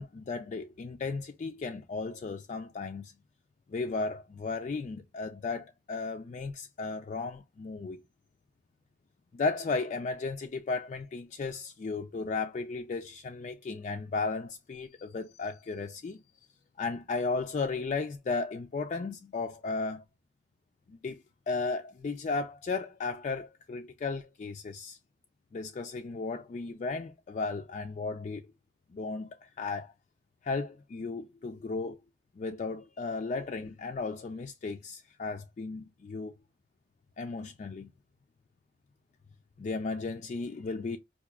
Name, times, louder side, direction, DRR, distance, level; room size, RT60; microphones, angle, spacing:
voice 1, 0.0-3.1 3.7-8.0 9.3-16.2 16.8-20.0 20.9-25.0 25.5-28.4 28.9-29.9 30.4-32.0 32.4-36.3 37.2-37.9 39.6-41.0, left 4 dB, 40° left, 0.3 m, -35 dB
4.7 x 2.5 x 2.3 m
head